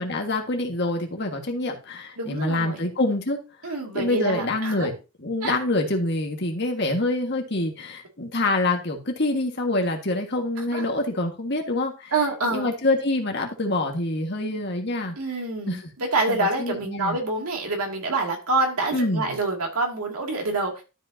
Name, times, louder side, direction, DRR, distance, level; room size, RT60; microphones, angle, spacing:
voice 1, 0.0-4.9 5.2-12.1 12.5-15.2 15.7-15.9 16.3-17.2 18.9-19.3, left 2 dB, 50° left, 2 dB, 1.6 m, -26 dB
voice 2, 2.2-2.8 3.6-4.9 5.4-5.5 10.7-10.9 12.1-12.7 15.2-20.8, right 3 dB, 85° right, 1 dB, 2.4 m, -26 dB
12.5 x 5.4 x 2.7 m, 0.30 s
head